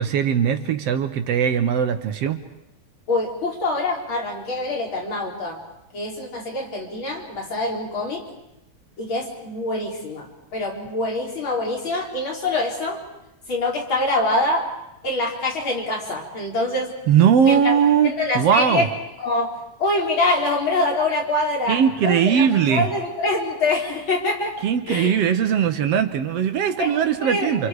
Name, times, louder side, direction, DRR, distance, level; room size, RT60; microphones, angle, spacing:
voice 1, 0.0-2.4 17.1-18.9 21.7-22.9 24.6-27.7, right 8 dB, 65° right, 8 dB, 1.8 m, -20 dB
voice 2, 3.1-5.6 5.9-8.2 9.0-13.0 13.5-14.7 15.0-17.0 17.4-17.7 18.0-18.9 19.2-19.5 19.8-24.6 24.9-25.1 26.8-27.7, left 2 dB, 40° left, 0 dB, 4.1 m, -25 dB
28.5 x 27.0 x 4.8 m, 0.89 s
omnidirectional pair, 3.4 m